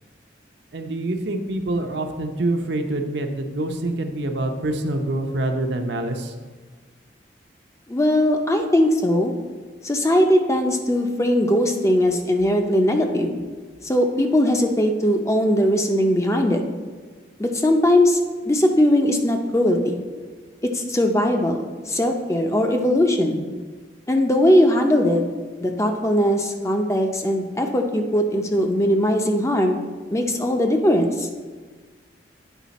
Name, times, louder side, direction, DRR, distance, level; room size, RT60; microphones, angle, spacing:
voice 1, 0.7-6.3, right 2 dB, 70° right, 5 dB, 0.7 m, -26 dB
voice 2, 7.9-9.3 9.8-13.3 13.8-16.6 17.4-20.0 20.6-23.4 24.1-25.2 25.6-29.8 30.1-31.3, left 1 dB, 15° left, 4 dB, 0.5 m, -20 dB
9.1 x 4.9 x 4.1 m, 1.4 s
head